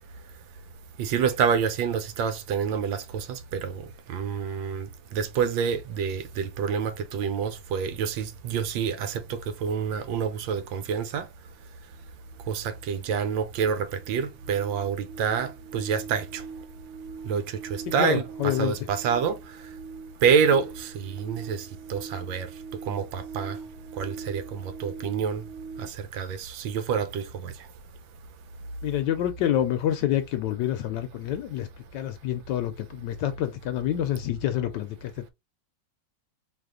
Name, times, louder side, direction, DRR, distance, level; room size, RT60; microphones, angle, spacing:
voice 1, 1.0-11.3 12.5-16.4 17.2-19.4 20.2-22.5 22.8-23.6 24.0-25.4 25.8-27.5, right 7 dB, 85° right, 1.4 m, -27 dB
sound 1, 12.3-12.4 12.7-25.9, right 5 dB, 65° right, 1.0 m, -42 dB
voice 2, 17.9-18.7 28.8-35.3, left 11 dB, 75° left, 1.1 m, -28 dB
4.1 x 2.8 x 3.7 m
omnidirectional pair, 2.0 m